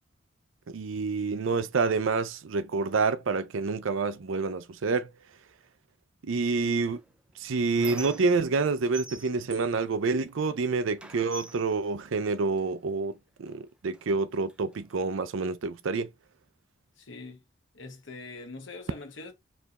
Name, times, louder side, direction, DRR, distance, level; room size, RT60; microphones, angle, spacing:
voice 1, 0.7-5.1 6.2-7.0 7.4-16.1, right 4 dB, 70° right, 0.5 m, -28 dB
voice 2, 6.4-7.0 17.0-17.5 17.7-19.3, left 3 dB, 65° left, 1.0 m, -43 dB
Squeak, 6.9-8.7 8.9-10.6 11.0-12.7 13.5-13.6 13.9-15.0, right 2 dB, 5° right, 0.3 m, -45 dB
4.5 x 3.3 x 2.9 m
head